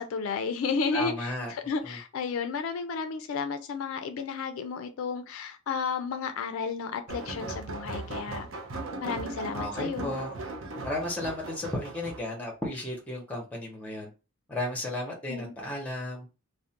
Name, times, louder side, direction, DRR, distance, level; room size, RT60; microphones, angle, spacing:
voice 1, 0.0-8.5 9.0-10.1 15.3-15.5, left 5 dB, 70° left, 0.3 m, -32 dB
voice 2, 0.9-1.5 1.8-2.0 9.5-10.3 10.8-14.1 14.5-16.3, left 1 dB, 5° left, 0.8 m, -34 dB
sound 1, 7.1-12.2, right 2 dB, 65° right, 0.5 m, -38 dB
2.4 x 2.0 x 2.8 m
head